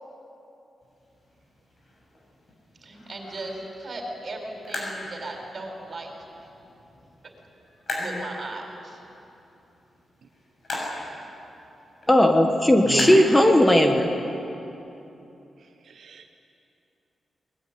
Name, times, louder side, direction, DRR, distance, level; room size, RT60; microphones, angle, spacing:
sound 1, 0.8-14.0, left 1 dB, 45° left, 7.3 m, -40 dB
voice 1, 2.8-6.1 8.0-9.0, right 2 dB, 40° right, 2 dB, 4.8 m, -36 dB
voice 2, 12.1-14.1, left 1 dB, 10° left, 4 dB, 1.3 m, -17 dB
voice 3, 12.9-13.3 15.8-16.3, right 6 dB, 65° right, 5 dB, 1.0 m, -31 dB
22.5 x 21.0 x 9.6 m, 2.9 s
wide cardioid pair, 150°, 0 cm